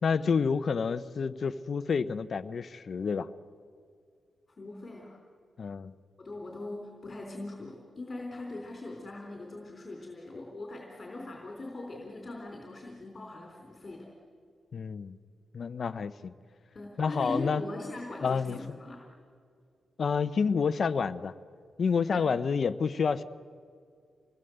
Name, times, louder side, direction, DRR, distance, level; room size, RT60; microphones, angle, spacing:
voice 1, 0.0-3.3 5.6-5.9 14.7-15.2 15.5-16.3 17.0-17.6 18.2-18.6 20.0-21.3 21.8-23.2, left 5 dB, 50° left, 12 dB, 0.8 m, -29 dB
voice 2, 4.5-5.2 6.2-14.1 16.7-19.0 22.1-22.3, left 2 dB, 30° left, 0 dB, 3.9 m, -41 dB
27.0 x 19.5 x 8.0 m, 2.2 s
wide cardioid pair, 125°, 0 cm